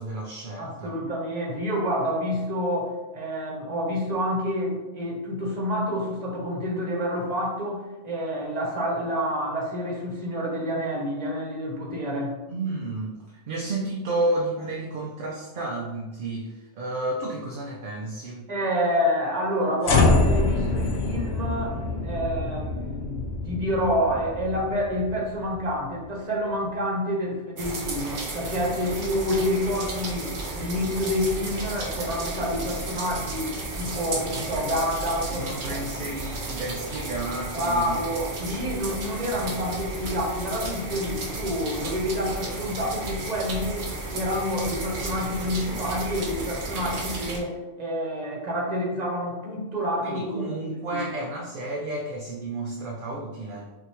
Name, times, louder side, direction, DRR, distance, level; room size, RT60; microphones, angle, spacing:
voice 1, 0.0-1.0 12.5-18.5 35.3-38.0 50.0-53.8, right 2 dB, 55° right, -1 dB, 0.7 m, -31 dB
voice 2, 0.6-12.4 18.5-21.7 22.0-23.2 23.4-35.8 37.5-43.9 44.1-51.0, equal, 40° right, -2 dB, 1.1 m, -28 dB
sound 1, 19.8-26.1, left 3 dB, 70° left, 0.9 m, -26 dB
sound 2, 27.6-47.4, right 2 dB, 75° right, 1.2 m, -33 dB
5.5 x 2.8 x 3.1 m, 1.1 s
omnidirectional pair, 1.1 m